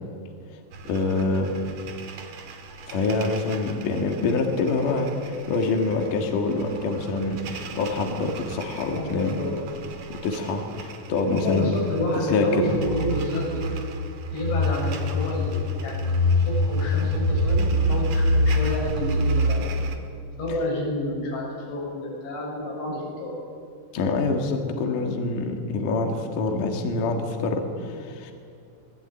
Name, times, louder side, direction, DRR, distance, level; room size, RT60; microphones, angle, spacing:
sound 1, 0.7-20.0, left 1 dB, 50° right, 2.6 m, -27 dB
voice 1, 0.8-1.5 2.9-9.4 10.1-11.8 12.2-12.8 23.9-28.3, left 3 dB, 55° left, 2 dB, 3.1 m, -26 dB
voice 2, 8.9-9.6 11.3-13.7 14.3-16.0 16.3-19.8 20.4-23.3, left 1 dB, 85° left, -3 dB, 9.9 m, -29 dB
24.5 x 21.0 x 9.0 m, 2.3 s
omnidirectional pair, 5.2 m